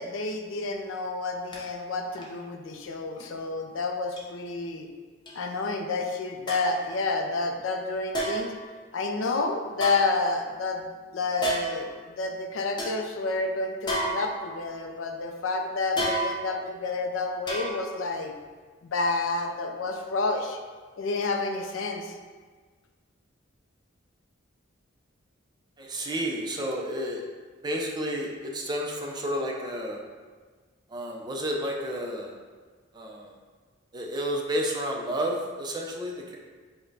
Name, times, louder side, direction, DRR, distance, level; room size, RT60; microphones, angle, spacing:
voice 1, 0.0-4.9 5.3-8.5 8.9-18.3 18.8-20.6 21.0-22.2, left 3 dB, 70° left, 4 dB, 0.4 m, -29 dB
sound 1, 1.5-1.6 2.1-2.4 3.2-3.3 4.2-4.3 5.3-5.4 6.5-6.8 8.1-8.6 9.7-10.6 11.4-11.9 12.4-12.5 12.8-13.0 13.9-14.7 16.0-16.6 17.5-18.0 18.4-18.5, right 1 dB, 25° left, 0.7 m, -31 dB
voice 2, 25.8-27.2 27.6-30.0 30.9-32.3 32.9-33.3 33.9-36.4, equal, 20° right, -1 dB, 0.5 m, -31 dB
4.7 x 2.2 x 4.6 m, 1.5 s
head